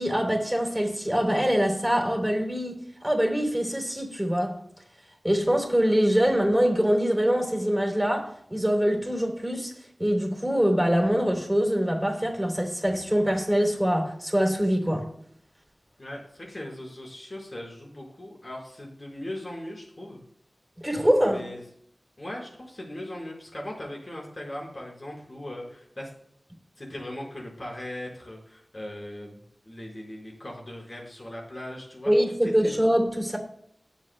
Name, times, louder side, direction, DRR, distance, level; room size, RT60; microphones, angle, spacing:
voice 1, 0.0-4.6 5.2-9.7 10.0-15.1 20.8-21.4 32.1-33.4, equal, 5° right, 3.6 m, -24 dB
voice 2, 16.0-20.2 21.2-21.6 22.2-26.1 26.8-32.1 32.4-32.7, left 1 dB, 45° left, 5.1 m, -39 dB
20.0 x 7.6 x 2.3 m
wide cardioid pair, 50°, 0 cm